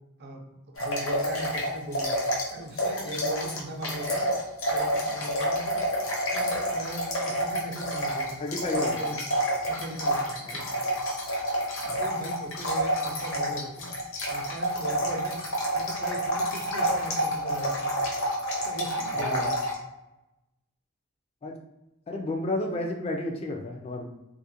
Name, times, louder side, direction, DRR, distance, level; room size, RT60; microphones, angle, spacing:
voice 1, 0.2-2.2 2.5-4.3 4.7-5.8 6.3-8.4 8.8-9.3 9.7-10.8 11.8-13.9 14.3-15.4 15.7-17.9 18.6-19.6, right 1 dB, 50° right, 2 dB, 0.5 m, -39 dB
sound 1, 0.8-2.5 2.8-19.7, equal, 60° left, 0.7 m, -28 dB
voice 2, 8.4-9.0 10.4-10.5 19.1-19.5 21.4-21.6 22.1-24.0, left 2 dB, 30° left, 1 dB, 0.3 m, -31 dB
2.4 x 2.1 x 2.8 m, 0.94 s
head